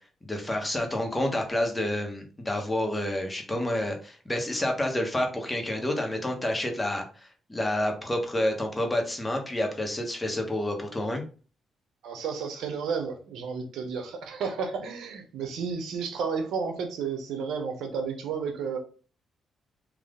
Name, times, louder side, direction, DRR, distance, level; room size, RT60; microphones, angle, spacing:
voice 1, 0.2-7.0 7.5-11.2, left 1 dB, 15° left, 1.1 m, -29 dB
voice 2, 12.0-18.8, right 5 dB, 85° right, 0.8 m, -32 dB
3.6 x 2.4 x 3.7 m
cardioid pair, 90°, 0 cm